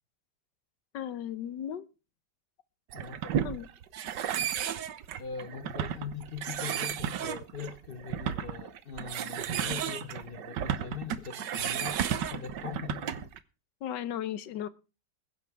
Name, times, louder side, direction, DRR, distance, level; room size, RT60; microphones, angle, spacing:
voice 1, 0.9-1.8 3.4-3.7 13.8-14.7, left 10 dB, 80° left, 1.6 m, -35 dB
voice 2, 2.9-3.4 4.3-4.6 5.2-12.0 12.3-13.3, left 6 dB, 45° left, 0.7 m, -41 dB
sound 1, 2.9-13.4, right 9 dB, 85° right, 1.5 m, -33 dB
21.0 x 10.5 x 3.5 m
omnidirectional pair, 1.9 m